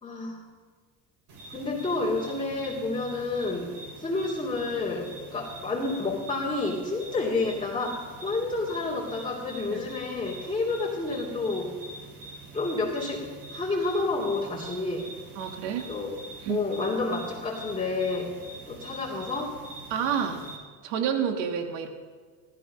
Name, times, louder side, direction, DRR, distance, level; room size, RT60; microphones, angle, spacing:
voice 1, 0.0-0.4 1.5-11.7 12.5-15.1 15.9-16.2 16.5-18.3 18.7-19.5, left 3 dB, 10° left, -7 dB, 2.8 m, -30 dB
sound 1, 1.3-20.6, right 2 dB, 60° right, 4.4 m, -45 dB
voice 2, 15.4-15.9 16.4-16.6 19.9-20.5 20.8-21.9, right 8 dB, 80° right, 5 dB, 1.8 m, -29 dB
15.0 x 14.0 x 5.5 m, 1.5 s
supercardioid pair, 90°, 45 cm